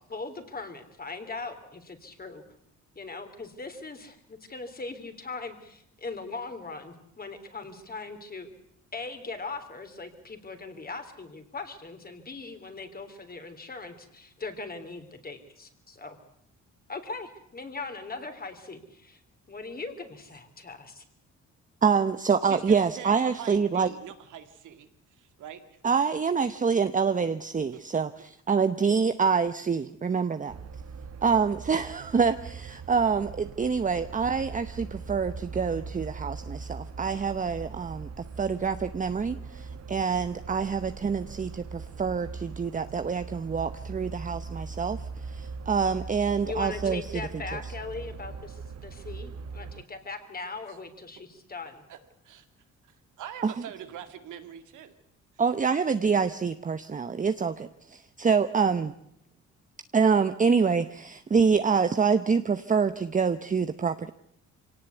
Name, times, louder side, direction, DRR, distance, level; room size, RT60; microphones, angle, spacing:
voice 1, 0.0-2.4 3.0-8.5 8.9-16.2 16.9-19.2 19.5-21.0 46.5-51.2 51.5-51.7, left 3 dB, 30° left, 7 dB, 3.4 m, -39 dB
voice 2, 21.8-23.9 25.8-30.5 31.2-47.1 47.5-47.6 53.4-53.6 55.4-58.9 59.9-64.1, right 5 dB, 25° right, 10 dB, 0.8 m, -26 dB
voice 3, 22.4-24.9 25.2-25.6 27.7-27.8 51.9-52.0 52.3-52.4 53.2-54.9, right 9 dB, 80° right, 8 dB, 2.1 m, -43 dB
sound 1, 30.5-49.8, right 4 dB, 55° right, 1.4 m, -40 dB
24.0 x 18.0 x 8.2 m, 0.71 s
cardioid pair, 90°, 30 cm